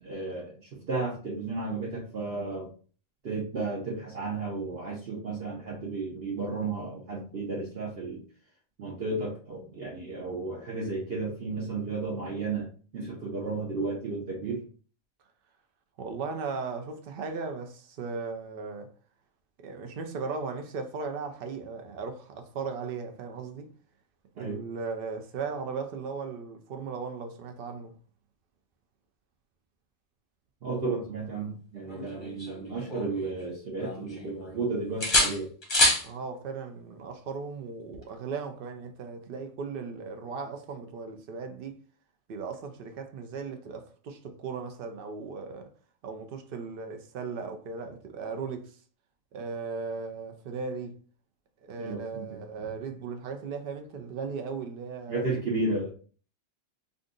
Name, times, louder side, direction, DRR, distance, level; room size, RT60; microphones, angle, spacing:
voice 1, 0.0-2.7 3.2-8.2 8.8-12.7 12.9-14.6 24.4-24.6 30.6-35.5 51.8-52.7 55.1-55.9, right 3 dB, 55° right, 0.8 m, -33 dB
voice 2, 16.0-18.9 19.6-23.7 24.4-27.9 36.0-41.8 42.3-45.7 46.0-48.8 49.3-51.0 51.6-55.3, right 5 dB, 70° right, 0.5 m, -37 dB
sound 1, 31.9-33.4 33.8-34.6 35.0-36.1 37.9-38.1, left 1 dB, 25° left, 0.7 m, -27 dB
2.6 x 2.4 x 3.6 m
omnidirectional pair, 1.5 m